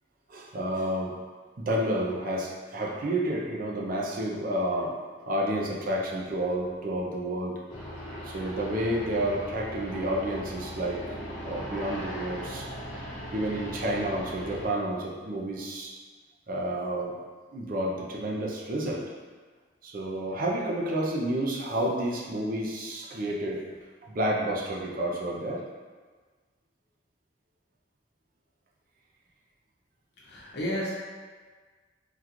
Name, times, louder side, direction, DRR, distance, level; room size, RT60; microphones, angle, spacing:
voice 1, 0.3-1.1 1.6-4.9 5.2-7.5 8.2-12.7 13.3-15.9 16.5-17.1 17.5-19.0 19.8-23.6 24.0-25.6, right 1 dB, 45° right, -2 dB, 0.5 m, -30 dB
sound 1, 7.7-14.7, equal, 85° left, 0.9 m, -39 dB
voice 2, 30.2-30.9, equal, 60° left, -6 dB, 0.9 m, -32 dB
3.6 x 2.3 x 2.9 m, 1.5 s
head